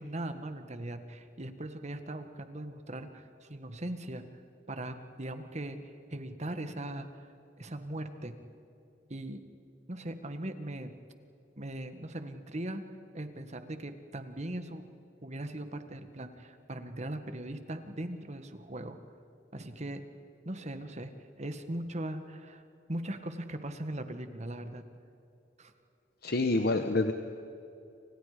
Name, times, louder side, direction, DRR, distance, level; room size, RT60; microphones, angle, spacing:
voice 1, 0.0-4.3 4.7-7.1 7.6-8.4 9.1-9.4 9.9-10.9 11.6-12.8 13.1-14.8 15.2-19.0 19.5-20.0 20.4-21.1 21.4-22.6 22.9-24.8 25.6-25.7, right 1 dB, 40° right, 8 dB, 1.7 m, -39 dB
voice 2, 26.2-27.1, left 2 dB, 60° left, 7 dB, 1.2 m, -27 dB
30.0 x 26.5 x 5.1 m, 2.8 s
head